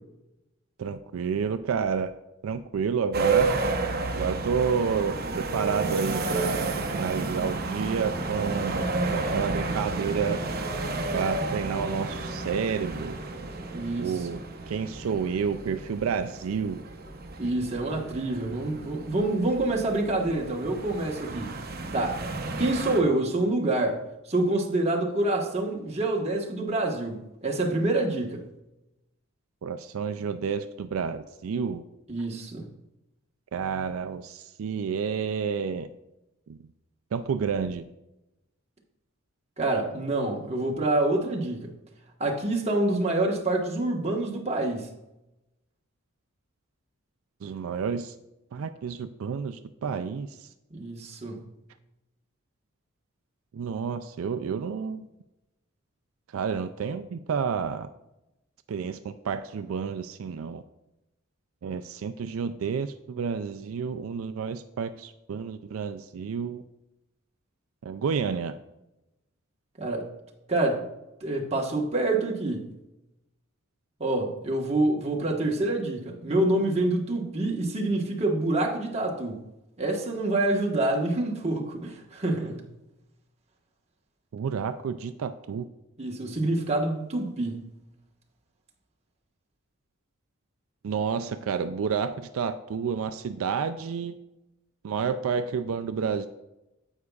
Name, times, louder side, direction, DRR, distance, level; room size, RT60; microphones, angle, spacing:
voice 1, 0.8-2.1 2.4-3.5 4.1-8.8 9.1-10.4 11.1-13.2 14.0-14.4 14.7-16.8 29.6-31.8 33.5-35.9 36.5-36.6 37.1-37.8 47.4-48.1 48.5-50.5 53.5-55.1 56.3-57.9 58.7-60.6 61.6-66.6 67.8-68.6 84.3-85.7 90.8-94.1 94.8-96.3, right 6 dB, 80° right, 10 dB, 0.4 m, -30 dB
sound 1, 3.1-23.0, right 3 dB, 50° right, 0.9 m, -31 dB
voice 2, 13.7-14.3 17.4-21.5 21.9-22.2 22.6-24.0 24.3-28.4 32.1-32.7 39.6-41.7 42.2-44.9 50.7-51.4 69.8-70.1 70.5-70.8 71.2-72.7 74.0-79.4 79.8-82.7 86.0-87.6, right 2 dB, 30° right, 0 dB, 1.3 m, -27 dB
9.6 x 8.1 x 2.4 m, 0.93 s
head